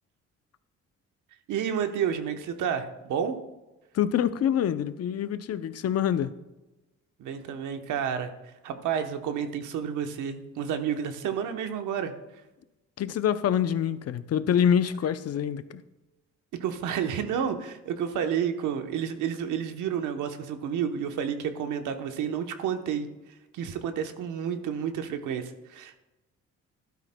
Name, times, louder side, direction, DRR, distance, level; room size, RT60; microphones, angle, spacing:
voice 1, 1.5-3.3 7.2-8.3 8.6-12.1 16.6-23.1 23.5-26.0, right 8 dB, 85° right, 1.0 m, -30 dB
voice 2, 3.9-6.3 13.0-15.8, left 9 dB, 55° left, 0.6 m, -26 dB
12.5 x 12.0 x 2.2 m
cardioid pair, 90°, 30 cm